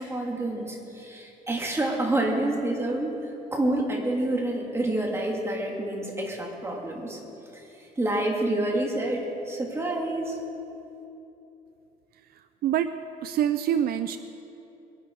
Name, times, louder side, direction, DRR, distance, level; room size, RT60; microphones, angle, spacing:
voice 1, 0.0-3.1 3.5-7.2 7.5-10.4, right 1 dB, 15° right, -1 dB, 3.0 m, -28 dB
voice 2, 13.2-14.2, right 10 dB, 65° right, 10 dB, 0.6 m, -25 dB
22.5 x 11.0 x 4.9 m, 2.9 s
cardioid pair, 110°, 17 cm